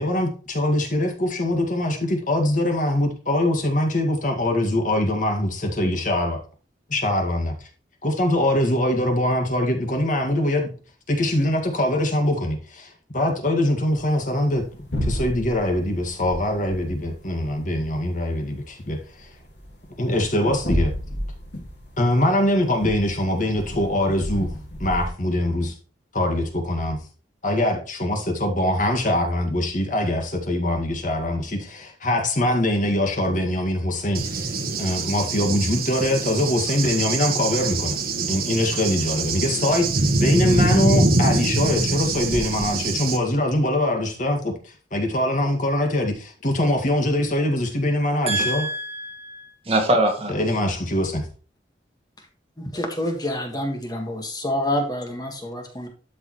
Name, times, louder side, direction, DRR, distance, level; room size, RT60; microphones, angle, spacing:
voice 1, 0.0-6.4 6.9-7.7 8.0-10.7 11.1-14.6 15.0-19.3 20.0-20.9 22.0-24.5 24.8-25.7 26.1-27.0 27.4-34.5 34.8-38.0 38.3-48.7 50.3-51.2, left 1 dB, 45° left, 2.0 m, -23 dB
sound 1, 13.9-25.1, equal, 70° left, 2.7 m, -32 dB
Cricket / Thunder, 34.1-43.2, right 2 dB, 55° right, 1.4 m, -24 dB
voice 2, 48.3-50.3, right 1 dB, 35° right, 2.2 m, -24 dB
voice 3, 52.7-55.9, left 1 dB, 20° left, 1.7 m, -27 dB
12.5 x 5.4 x 3.1 m
head